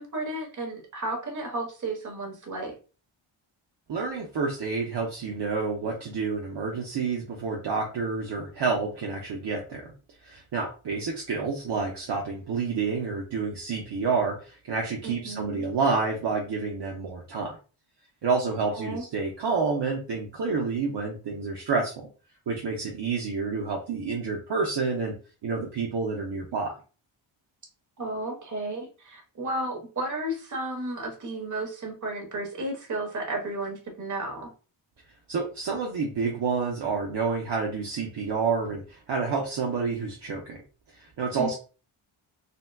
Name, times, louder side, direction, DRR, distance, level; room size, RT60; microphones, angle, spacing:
voice 1, 0.0-2.7 15.0-15.6 18.7-19.0 28.0-34.5 41.4-41.5, right 2 dB, 35° right, 1 dB, 1.1 m, -33 dB
voice 2, 3.9-9.9 10.2-17.6 18.2-22.1 22.5-25.1 25.4-26.7 35.3-40.6 41.0-41.5, right 4 dB, 55° right, -1 dB, 0.7 m, -29 dB
3.8 x 2.2 x 2.2 m, 0.35 s
wide cardioid pair, 120°, 49 cm